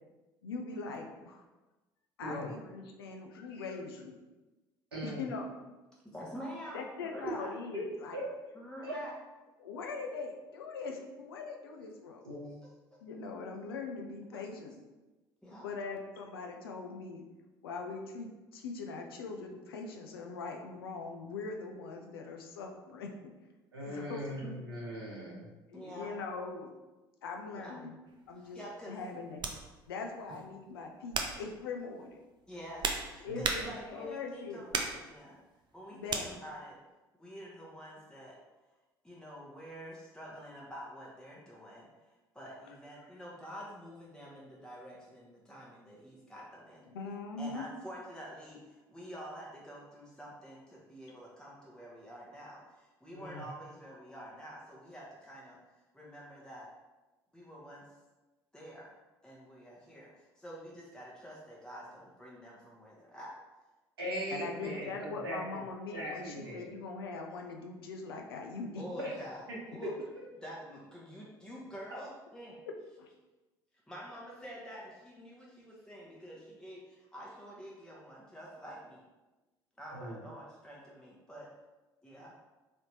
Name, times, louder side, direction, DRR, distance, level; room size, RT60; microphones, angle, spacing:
voice 1, 0.4-1.5 2.2-4.2 5.0-5.5 6.7-8.2 9.6-12.2 13.0-14.7 15.6-17.2 17.6-23.3 23.9-24.2 25.7-26.7 27.2-28.0 28.3-28.6 28.9-29.4 29.9-32.2 33.2-34.6 35.9-36.3 46.9-47.7 64.3-68.8 73.0-73.1, left 4 dB, 80° left, 2 dB, 0.4 m, -41 dB
voice 2, 4.9-5.2 7.2-7.3 7.7-7.8 8.1-8.2 8.8-8.9 12.2-12.6 23.7-25.5 33.2-33.4 53.1-53.4 64.0-65.4 65.9-66.7 69.0-69.1 69.5-69.6 79.9-80.2, equal, 85° right, -5 dB, 0.9 m, -39 dB
voice 3, 6.1-6.8 7.1-7.5 8.5-9.1 12.9-13.0 14.3-14.4 15.4-15.7 23.8-24.1 24.4-24.5 25.7-26.2 27.5-27.7 28.4-29.0 32.5-35.4 35.7-36.8 37.2-38.4 39.0-41.9 42.3-46.8 47.4-56.7 57.3-57.9 58.5-58.9 59.2-63.3 64.3-64.9 65.3-65.4 68.8-69.4 69.7-69.9 70.4-72.6 73.9-79.0 79.8-81.5 82.0-82.3, equal, 5° left, -5 dB, 0.8 m, -47 dB
sound 1, 28.1-28.3 29.4-29.6 30.3-30.5 31.1-31.5 32.4-34.0 34.7-35.0 36.1-36.3, right 4 dB, 40° right, 0.5 m, -35 dB
3.3 x 2.8 x 2.7 m, 1.1 s
figure-of-eight pair, 55°, 12 cm